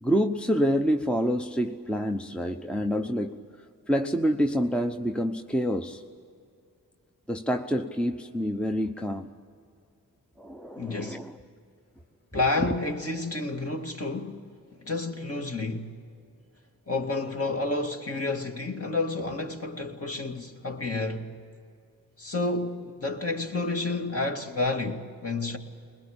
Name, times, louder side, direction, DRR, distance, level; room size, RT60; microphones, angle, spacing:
voice 1, 0.0-3.4 3.9-6.0 7.3-9.3 10.4-11.4 12.6-12.7, equal, 5° left, 0.9 m, -27 dB
voice 2, 10.8-11.2 12.3-14.4 14.8-15.9 16.9-21.4 22.2-25.6, left 2 dB, 35° left, 2.3 m, -30 dB
21.0 x 21.0 x 8.7 m
cardioid pair, 45°, 39 cm